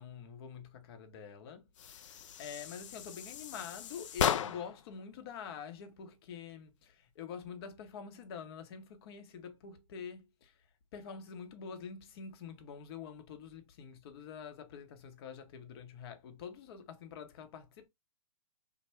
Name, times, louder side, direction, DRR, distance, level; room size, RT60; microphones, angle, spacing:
voice 1, 0.0-10.6 10.9-17.9, left 6 dB, 45° left, 0.7 m, -46 dB
sound 1, 1.8-4.9, left 9 dB, 65° left, 0.4 m, -36 dB
3.3 x 2.1 x 3.2 m
figure-of-eight pair, 120°, 18 cm